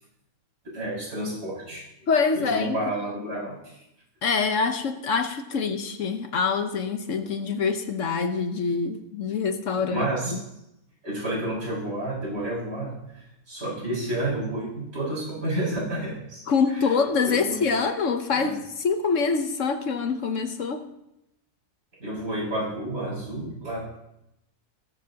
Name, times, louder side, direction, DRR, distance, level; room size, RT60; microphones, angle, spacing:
voice 1, 0.6-1.9 2.3-3.8 9.8-10.3 11.0-16.4 16.7-16.9 17.2-17.6 18.3-18.6 22.0-24.0, right 1 dB, 75° right, 6.4 m, -30 dB
voice 2, 2.1-2.8 4.2-10.4 16.5-20.9, left 5 dB, 65° left, 1.2 m, -25 dB
18.0 x 14.0 x 2.9 m
omnidirectional pair, 1.5 m